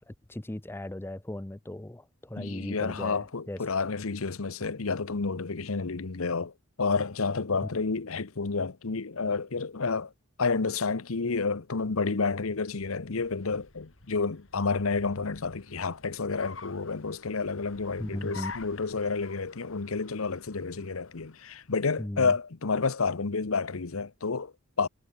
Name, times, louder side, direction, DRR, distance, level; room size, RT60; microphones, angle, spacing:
voice 1, 0.0-3.6 18.0-18.5 22.0-22.3, left 1 dB, 10° left, 0.5 m, -37 dB
voice 2, 2.4-6.5 6.8-10.1 10.4-24.9, left 4 dB, 90° left, 0.9 m, -30 dB
Car, 12.5-22.0, left 4 dB, 70° left, 4.4 m, -49 dB
head